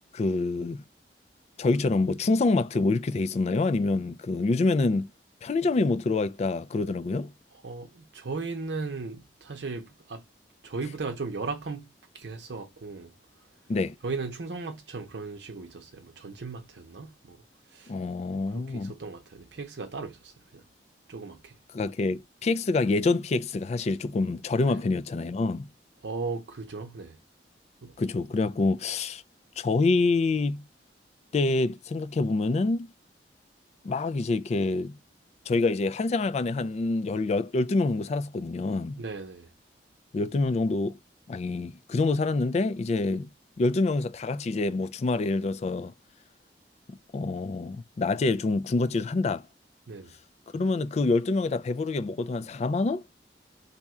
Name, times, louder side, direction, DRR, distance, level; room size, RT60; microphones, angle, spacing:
voice 1, 0.1-0.8 1.6-5.1 5.4-7.3 13.7-14.0 17.9-18.9 21.7-25.7 28.0-29.2 29.6-30.6 31.3-32.9 33.8-35.0 35.5-39.0 40.1-41.0 41.3-43.3 43.6-45.9 46.9-49.4 50.5-53.0, left 3 dB, 40° left, 0.3 m, -26 dB
voice 2, 7.6-10.2 10.6-11.9 12.1-13.1 14.0-17.4 17.7-17.9 18.3-20.6 21.1-21.6 24.6-24.8 26.0-27.2 27.8-27.9 39.0-39.5 49.9-50.1, right 4 dB, 75° right, 0.7 m, -37 dB
2.7 x 2.3 x 4.1 m
head